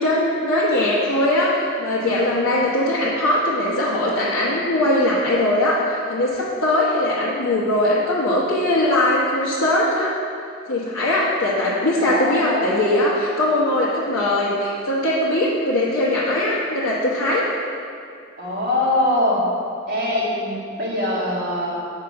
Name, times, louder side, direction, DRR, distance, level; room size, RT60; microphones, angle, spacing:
voice 1, 0.0-10.1 10.7-17.5, left 1 dB, 90° left, -7 dB, 1.2 m, -20 dB
voice 2, 2.0-2.4 12.0-12.7 18.4-19.4 19.9-21.8, left 1 dB, 40° right, -7 dB, 2.2 m, -23 dB
8.1 x 4.9 x 5.8 m, 2.4 s
head